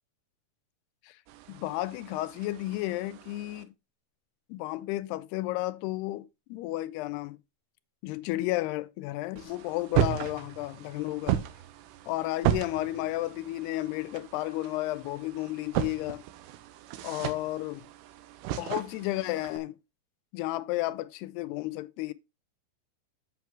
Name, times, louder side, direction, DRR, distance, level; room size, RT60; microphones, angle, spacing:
sound 1, 1.3-3.6 9.4-19.6, right 13 dB, 85° right, 2.8 m, -35 dB
voice 1, 1.5-3.7 4.5-7.4 8.0-11.4 12.1-16.2 17.0-17.9 18.5-19.8 20.3-22.1, left 17 dB, 85° left, 2.5 m, -32 dB
7.7 x 5.7 x 4.5 m
omnidirectional pair, 4.8 m